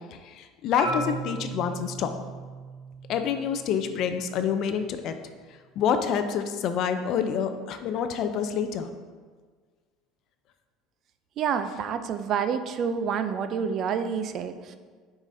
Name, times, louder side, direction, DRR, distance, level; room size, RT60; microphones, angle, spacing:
voice 1, 0.3-2.1 3.1-5.1 5.8-8.9, left 7 dB, 45° left, 8 dB, 0.4 m, -27 dB
Marimba xylophone, 0.8-5.0, right 2 dB, 5° right, 1.8 m, -37 dB
voice 2, 11.4-14.8, right 7 dB, 40° right, 9 dB, 0.4 m, -28 dB
9.5 x 4.8 x 2.6 m, 1.5 s
cardioid pair, 165°, 0 cm